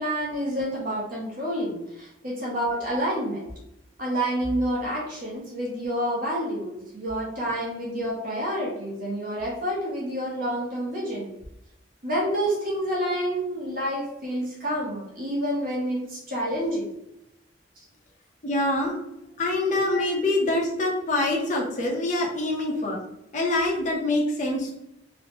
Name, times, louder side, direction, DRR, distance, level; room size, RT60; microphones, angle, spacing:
voice 1, 0.0-3.4 4.0-11.3 12.0-16.8 18.8-18.9 19.8-20.0, equal, 50° right, -4 dB, 0.8 m, -28 dB
voice 2, 18.4-18.9 19.4-23.0 23.3-24.7, left 2 dB, 40° left, -2 dB, 0.6 m, -25 dB
3.0 x 2.0 x 3.0 m, 0.83 s
head